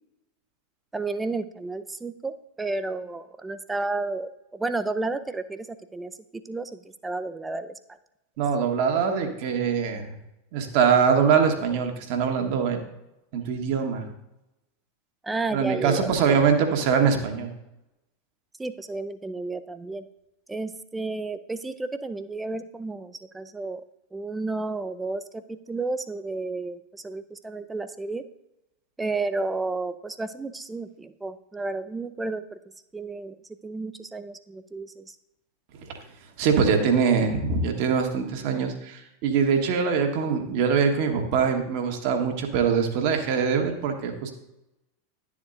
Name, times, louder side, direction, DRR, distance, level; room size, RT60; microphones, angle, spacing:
voice 1, 0.9-7.7 15.2-16.4 18.6-20.1 20.5-23.8 24.1-28.2 29.0-32.4 32.9-33.4 33.6-35.1, right 3 dB, 10° right, 12 dB, 0.5 m, -32 dB
voice 2, 8.4-10.1 10.5-12.8 13.3-14.1 15.5-17.5 36.4-44.3, right 6 dB, 50° right, 4 dB, 1.3 m, -23 dB
11.5 x 7.2 x 2.6 m, 0.89 s
figure-of-eight pair, 85°, 0 cm